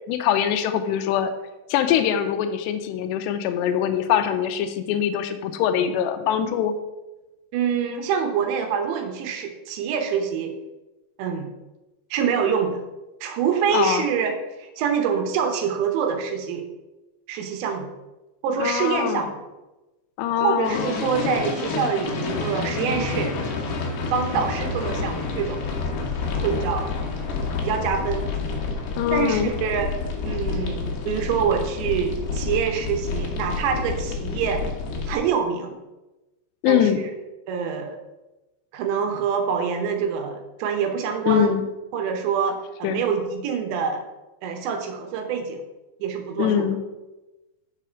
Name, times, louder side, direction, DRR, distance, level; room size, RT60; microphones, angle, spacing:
voice 1, 0.1-1.3 1.7-6.7 13.7-14.1 18.6-19.3 20.2-20.9 29.0-29.5 36.6-37.0 41.3-41.6 42.8-43.0 46.4-46.8, left 9 dB, 80° left, 8 dB, 2.6 m, -23 dB
voice 2, 7.5-10.5 11.2-11.5 12.1-12.8 13.2-16.6 17.3-17.9 18.4-19.4 20.3-23.3 24.1-25.6 26.4-26.9 27.2-28.3 29.1-34.6 35.1-35.8 36.7-36.9 37.5-38.0 38.7-41.5 41.9-44.0 44.4-45.6 46.0-46.5, right 7 dB, 80° right, 5 dB, 3.1 m, -25 dB
sound 1, 20.6-35.2, left 4 dB, 65° left, 2.5 m, -29 dB
6.8 x 6.2 x 4.4 m, 1.0 s
omnidirectional pair, 5.3 m